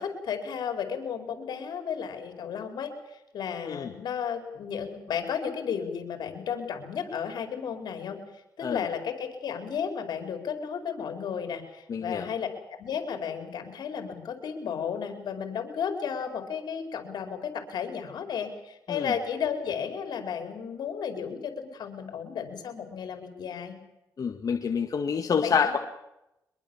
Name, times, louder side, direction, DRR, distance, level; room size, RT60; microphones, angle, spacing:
voice 1, 0.0-2.9 3.3-8.2 8.6-12.5 12.8-23.8 25.1-25.8, left 7 dB, 80° left, 5 dB, 5.0 m, -33 dB
voice 2, 11.9-12.3 18.9-19.1 24.2-25.8, left 6 dB, 55° left, 4 dB, 2.0 m, -27 dB
24.5 x 22.0 x 7.3 m, 0.88 s
cardioid pair, 80°, 7 cm